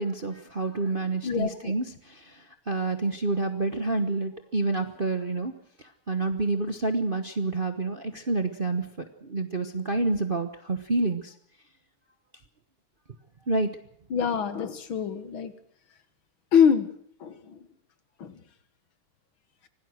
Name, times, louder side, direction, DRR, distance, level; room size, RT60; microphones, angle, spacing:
voice 1, 0.0-5.5 5.8-11.3 13.5-13.7, right 3 dB, 35° right, 7 dB, 0.9 m, -28 dB
voice 2, 1.2-1.7 14.1-15.5 16.5-16.9 17.2-17.6 18.2-18.3, left 7 dB, 65° left, 11 dB, 2.2 m, -24 dB
25.0 x 17.5 x 6.4 m, 0.65 s
omnidirectional pair, 2.4 m